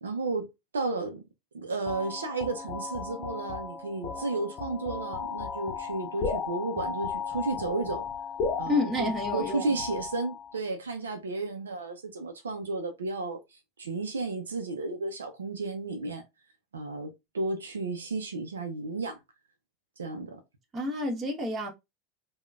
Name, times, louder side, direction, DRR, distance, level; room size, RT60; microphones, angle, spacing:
voice 1, 0.0-0.5 0.7-1.2 1.5-8.1 8.6-16.2 16.7-19.2 20.0-20.4, right 3 dB, 90° right, 0.5 m, -33 dB
sound 1, 1.9-10.6, left 5 dB, 50° left, 0.7 m, -35 dB
voice 2, 8.7-9.8 20.7-21.7, left 2 dB, 35° right, 1.3 m, -29 dB
3.6 x 2.2 x 2.3 m
hypercardioid pair, 85°, 0 cm